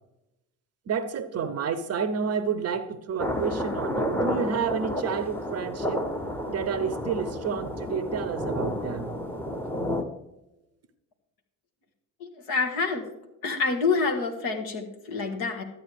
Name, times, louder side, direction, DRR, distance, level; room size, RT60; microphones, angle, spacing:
voice 1, 0.9-6.0 6.5-9.2, right 6 dB, 35° right, 0.8 m, -30 dB
sound 1, 3.2-10.0, equal, 5° left, 1.1 m, -31 dB
voice 2, 12.2-13.1 13.4-15.6, left 4 dB, 55° left, 1.8 m, -27 dB
12.5 x 8.6 x 3.5 m
figure-of-eight pair, 50°, 44 cm